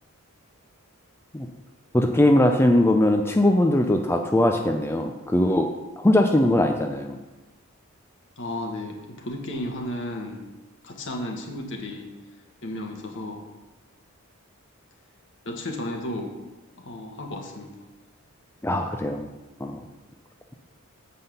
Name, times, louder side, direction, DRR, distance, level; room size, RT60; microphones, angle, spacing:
voice 1, 1.9-5.7 6.0-7.2 18.6-19.3 19.6-19.8, left 1 dB, 10° left, 3 dB, 0.5 m, -20 dB
voice 2, 8.4-10.4 10.8-12.1 12.6-13.4 15.4-16.4 16.8-17.8, left 1 dB, 60° left, 2 dB, 1.4 m, -33 dB
7.7 x 5.6 x 6.8 m, 1.1 s
head